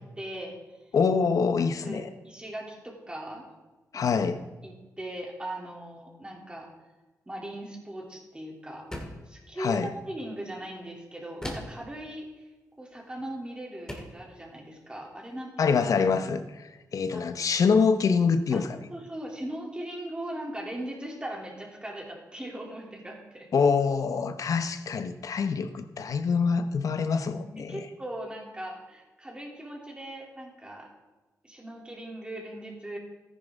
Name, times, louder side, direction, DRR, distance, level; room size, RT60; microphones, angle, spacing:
voice 1, 0.2-0.6 1.8-3.5 3.9-4.2 4.6-6.7 7.3-8.9 9.3-12.4 12.8-15.8 17.1-17.2 18.5-18.6 18.9-23.5 27.6-30.9 31.4-33.0, right 1 dB, 15° right, -1 dB, 3.0 m, -39 dB
voice 2, 0.9-2.1 3.9-4.4 9.6-9.9 15.6-18.7 23.5-27.8, left 5 dB, 65° left, 10 dB, 0.9 m, -25 dB
sound 1, 8.9-9.3 11.4-11.9 13.2-13.3 13.9-14.2, equal, 10° left, 2.2 m, -38 dB
13.5 x 10.5 x 3.7 m, 1.1 s
cardioid pair, 85°, 6 cm